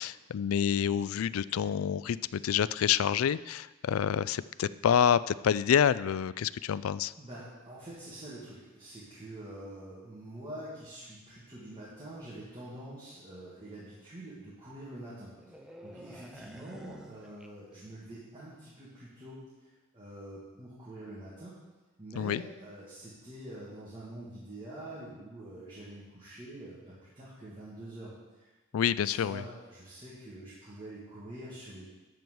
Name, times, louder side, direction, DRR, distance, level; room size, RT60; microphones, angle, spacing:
voice 1, 0.0-7.1 22.2-22.4 28.7-29.4, left 8 dB, 90° left, 18 dB, 0.3 m, -28 dB
voice 2, 7.2-15.6 15.8-21.5 22.0-28.5 29.0-31.9, right 1 dB, 25° right, -9 dB, 2.6 m, -46 dB
sound 1, 15.4-18.1 18.3-18.6, equal, 5° right, 0.7 m, -50 dB
12.0 x 4.7 x 7.8 m, 1.2 s
head